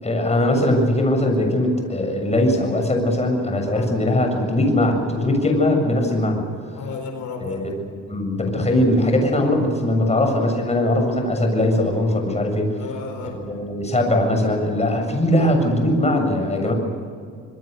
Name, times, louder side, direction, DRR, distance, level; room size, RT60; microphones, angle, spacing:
voice 1, 0.0-6.4 7.4-7.7 8.1-12.7 13.2-16.7, left 1 dB, 20° left, 3 dB, 7.3 m, -20 dB
voice 2, 6.7-7.6 12.8-13.3 16.6-16.7, left 5 dB, 70° left, 4 dB, 4.5 m, -33 dB
26.5 x 22.5 x 6.8 m, 2.3 s
cardioid pair, 90°, 30 cm